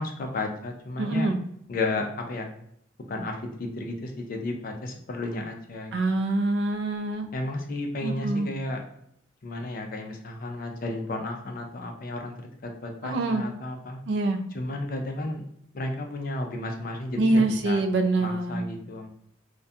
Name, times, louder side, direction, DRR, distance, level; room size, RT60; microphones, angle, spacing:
voice 1, 0.0-1.3 1.7-2.5 3.1-5.9 7.3-8.9 9.4-14.0 14.5-15.4 15.7-17.8 18.2-19.1, left 2 dB, 45° left, 3 dB, 0.4 m, -33 dB
voice 2, 1.0-1.4 5.9-7.3 8.0-8.5 13.0-13.5 14.1-14.4 17.2-18.6, right 2 dB, 60° right, 6 dB, 0.3 m, -25 dB
2.3 x 2.1 x 2.6 m, 0.72 s
head